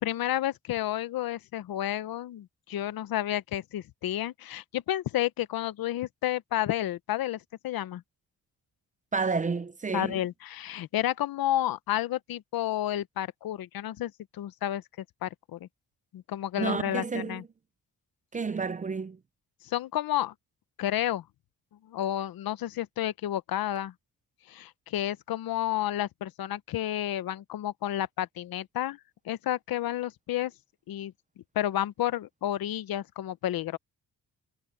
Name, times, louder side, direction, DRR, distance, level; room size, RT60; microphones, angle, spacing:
voice 1, 0.0-8.0 9.9-14.8 15.2-15.7 16.1-17.4 19.6-20.3 20.8-21.2 21.8-23.9 24.5-29.0 29.2-30.5 30.9-31.1 31.5-33.8, left 12 dB, 80° left, 0.8 m, -31 dB
voice 2, 9.1-10.2 16.6-17.4 18.3-19.2, right 4 dB, 25° right, 0.4 m, -30 dB
wide cardioid pair, 165°, 35 cm